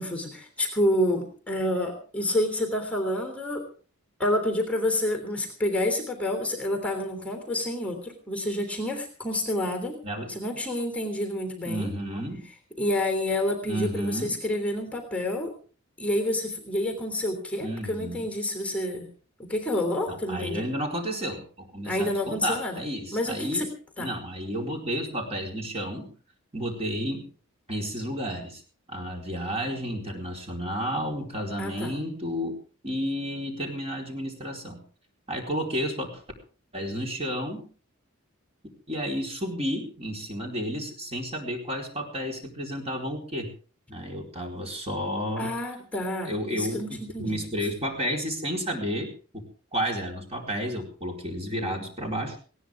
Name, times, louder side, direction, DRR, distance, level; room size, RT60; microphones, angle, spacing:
voice 1, 0.0-3.6 4.2-10.0 10.3-11.9 12.8-15.5 16.0-19.1 19.4-20.7 21.8-22.8 23.1-23.7 24.0-24.1 31.6-31.9 45.4-47.4, left 1 dB, 5° left, 4 dB, 3.3 m, -28 dB
voice 2, 10.0-10.4 11.6-12.5 13.7-14.4 17.6-18.2 20.1-23.7 24.0-26.1 26.5-27.2 27.7-28.6 28.9-32.5 32.8-34.8 35.3-36.2 36.7-37.7 38.9-43.5 43.9-45.5 46.2-49.4 49.7-52.4, equal, 30° right, 1 dB, 4.3 m, -31 dB
19.5 x 17.5 x 3.6 m, 0.39 s
head